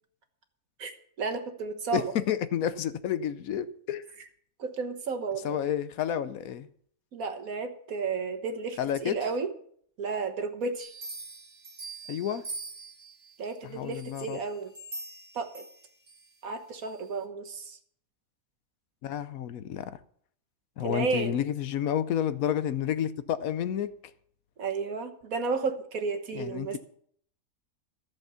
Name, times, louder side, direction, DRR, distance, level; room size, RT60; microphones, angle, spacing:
voice 1, 1.2-2.0 4.6-5.6 7.1-9.5 10.0-10.9 13.4-14.7 15.3-15.6 16.4-17.8 20.8-21.3 24.6-26.8, right 4 dB, 75° right, 1.7 m, -32 dB
voice 2, 1.9-4.0 5.4-6.7 8.8-9.2 12.1-12.4 13.6-14.4 19.0-20.0 20.8-23.9 26.3-26.8, left 10 dB, 75° left, 1.1 m, -30 dB
sound 1, 10.8-13.4 13.9-16.3 16.8-16.9, right 2 dB, 45° right, 2.2 m, -43 dB
13.5 x 7.0 x 7.0 m
omnidirectional pair, 1.5 m